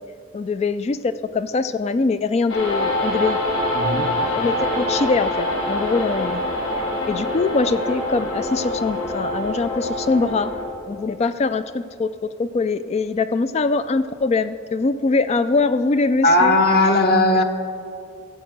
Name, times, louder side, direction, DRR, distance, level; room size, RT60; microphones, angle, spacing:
voice 1, 0.3-3.4 4.3-6.4 6.8-10.5 10.9-16.5, left 3 dB, 35° left, 12 dB, 0.3 m, -23 dB
sound 1, 2.5-10.7, left 1 dB, 75° left, 3.1 m, -25 dB
voice 2, 3.7-4.1 16.2-17.4, left 2 dB, 50° left, 4 dB, 1.1 m, -17 dB
15.5 x 7.6 x 6.6 m, 2.5 s
head